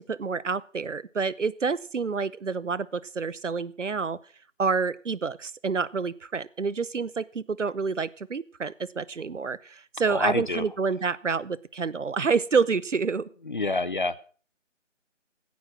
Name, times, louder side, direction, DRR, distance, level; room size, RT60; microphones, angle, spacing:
voice 1, 0.0-4.2 4.6-13.3, right 5 dB, 70° right, 21 dB, 0.9 m, -28 dB
voice 2, 10.1-10.6 13.4-14.3, left 3 dB, 40° left, 17 dB, 0.7 m, -28 dB
16.0 x 9.5 x 6.0 m, 0.43 s
figure-of-eight pair, 160°, 38 cm